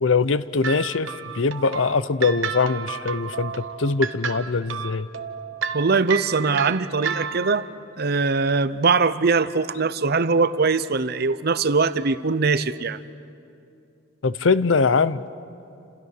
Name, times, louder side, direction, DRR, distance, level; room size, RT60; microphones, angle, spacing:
voice 1, 0.0-5.1 14.2-15.2, left 4 dB, 70° left, 15 dB, 0.7 m, -22 dB
sound 1, 0.6-7.7, right 7 dB, 80° right, 1.2 m, -31 dB
voice 2, 5.7-7.7 8.0-13.0, right 4 dB, 50° right, 14 dB, 0.7 m, -21 dB
29.5 x 27.0 x 6.7 m, 2.5 s
head